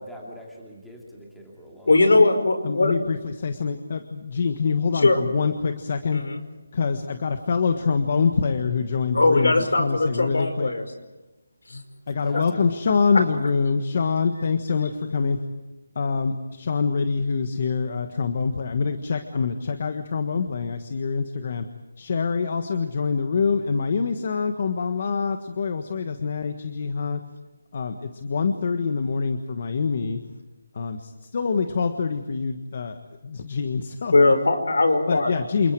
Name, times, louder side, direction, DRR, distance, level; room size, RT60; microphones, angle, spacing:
voice 1, 0.0-2.2 12.2-12.6, equal, ahead, -3 dB, 2.9 m, -43 dB
voice 2, 1.9-2.9 5.0-5.2 6.1-6.4 9.1-10.8 11.7-11.8 34.1-35.3, left 2 dB, 75° left, 7 dB, 5.3 m, -19 dB
voice 3, 2.6-6.2 6.7-10.7 12.1-15.4 15.9-21.7 22.0-27.2 27.7-30.2 30.7-33.0 33.2-34.3 35.1-35.7, left 5 dB, 35° left, 7 dB, 1.5 m, -25 dB
29.0 x 28.5 x 4.8 m, 1.1 s
hypercardioid pair, 175°, 0 cm